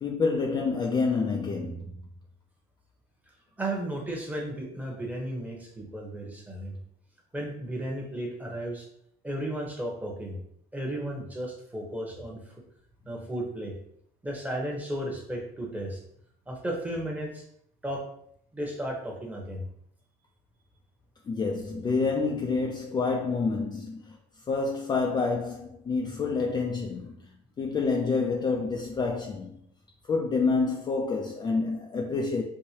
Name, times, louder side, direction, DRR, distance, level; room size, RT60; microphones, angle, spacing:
voice 1, 0.0-2.1 21.3-24.2 24.5-29.6 30.1-32.4, left 4 dB, 25° left, 0.4 m, -28 dB
voice 2, 3.6-6.8 7.3-8.8 9.2-10.4 10.7-12.4 13.1-13.7 14.2-16.0 16.5-17.4 17.8-18.0 18.5-19.6, right 1 dB, 10° right, 0.9 m, -34 dB
4.7 x 2.1 x 2.8 m
cardioid pair, 115°, 17 cm